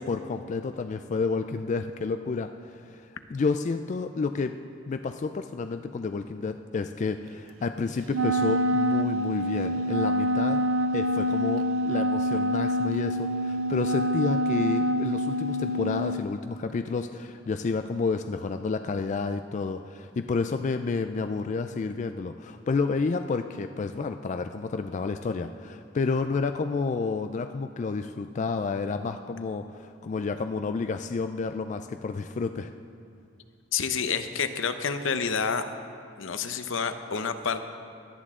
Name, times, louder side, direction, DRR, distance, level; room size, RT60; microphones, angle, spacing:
voice 1, 0.0-4.6 4.9-10.6 10.9-32.7, left 4 dB, 35° left, 8 dB, 0.3 m, -30 dB
Wind instrument woodwind instrument, 8.1-16.2, equal, 80° right, 0.4 m, -26 dB
voice 2, 33.7-35.6 36.2-37.6, left 6 dB, 75° left, 9 dB, 0.7 m, -28 dB
17.0 x 11.0 x 3.7 m, 2.4 s
head